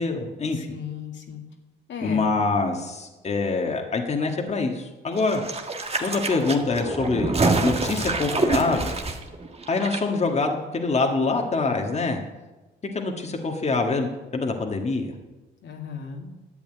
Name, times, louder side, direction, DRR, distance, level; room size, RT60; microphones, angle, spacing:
voice 1, 0.0-0.7 2.0-5.4 6.0-7.4 7.6-8.9 9.7-12.2 12.9-15.1, left 3 dB, 35° left, 2 dB, 1.7 m, -25 dB
voice 2, 0.5-1.4 1.9-2.3 15.6-16.3, left 6 dB, 65° left, 2 dB, 2.1 m, -36 dB
sound 1, 5.2-10.0 10.3-10.4, right 3 dB, 30° right, 1.7 m, -26 dB
11.0 x 8.4 x 9.0 m, 1.1 s
cardioid pair, 90°, 20 cm